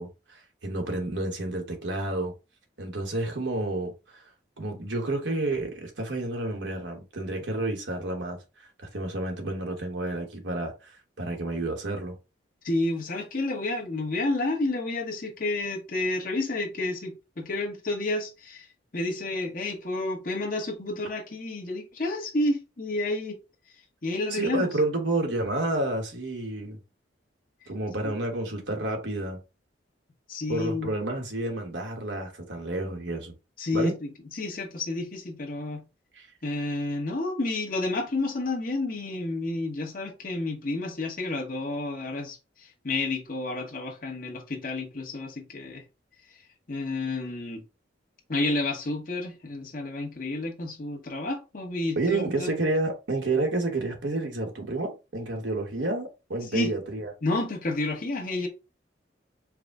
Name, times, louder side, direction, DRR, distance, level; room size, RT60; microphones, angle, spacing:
voice 1, 0.0-2.3 2.8-4.2 4.6-12.2 24.3-26.8 27.7-29.4 30.5-33.3 33.7-33.9 36.1-36.3 51.9-57.1, right 2 dB, 75° right, 1.1 m, -30 dB
voice 2, 12.6-18.7 18.9-23.4 24.0-24.7 28.0-28.1 30.3-30.9 33.6-35.9 36.4-45.8 46.7-47.6 48.3-52.5 56.5-56.7 57.2-58.5, left 2 dB, 50° left, 1.1 m, -30 dB
4.8 x 2.1 x 3.6 m
head